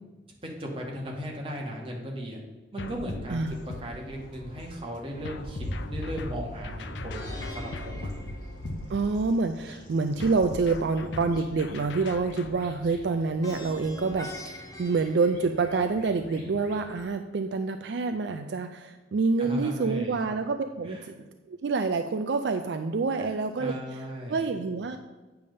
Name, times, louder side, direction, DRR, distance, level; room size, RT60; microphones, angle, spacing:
voice 1, 0.4-2.4 2.7-3.4 3.8-8.1 19.4-20.2 20.8-21.1 23.2-24.4, equal, 30° right, -1 dB, 1.4 m, -37 dB
sound 1, 2.8-4.5 5.2-9.4 10.2-12.7, left 2 dB, 75° left, 0.4 m, -41 dB
sound 2, 3.3-17.0, equal, 45° left, 1.7 m, -42 dB
Plucked string instrument, 7.1-9.3 13.4-16.0, left 1 dB, 20° left, 1.0 m, -44 dB
voice 2, 8.9-21.1 21.5-23.7 24.3-25.0, right 4 dB, 65° right, 7 dB, 0.4 m, -27 dB
8.5 x 3.5 x 6.5 m, 1.2 s
head